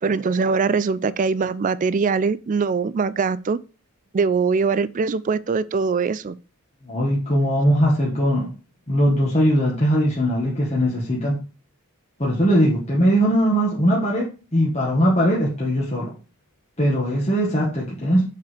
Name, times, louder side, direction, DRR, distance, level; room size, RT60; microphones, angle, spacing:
voice 1, 0.0-3.6 4.1-6.4, right 5 dB, 35° right, 0.3 m, -22 dB
voice 2, 6.8-8.5 8.9-11.4 12.2-16.1 16.8-18.2, equal, 30° left, 1.5 m, -20 dB
6.6 x 4.9 x 3.2 m
head